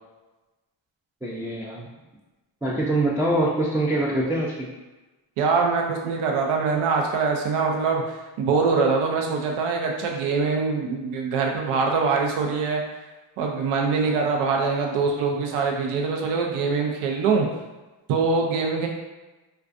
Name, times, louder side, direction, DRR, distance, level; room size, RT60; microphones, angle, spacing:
voice 1, 1.2-1.9 2.6-4.7, right 1 dB, 5° right, -5 dB, 0.3 m, -24 dB
voice 2, 5.4-12.8 13.4-17.5 18.1-18.9, right 4 dB, 80° right, 1 dB, 0.5 m, -23 dB
2.3 x 2.3 x 2.5 m, 1.1 s
supercardioid pair, 55°, 50 cm